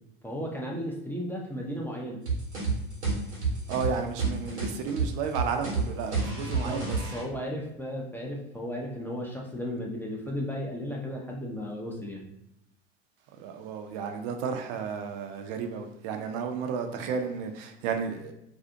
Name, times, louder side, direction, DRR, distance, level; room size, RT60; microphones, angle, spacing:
voice 1, 0.2-2.2 6.4-6.8 7.1-12.2, equal, 5° left, 0.4 m, -35 dB
sound 1, 2.3-7.2, right 3 dB, 90° right, 0.9 m, -30 dB
voice 2, 3.7-7.0 13.4-18.3, right 6 dB, 50° right, 0.5 m, -33 dB
2.5 x 2.3 x 2.6 m
hypercardioid pair, 75°, 33 cm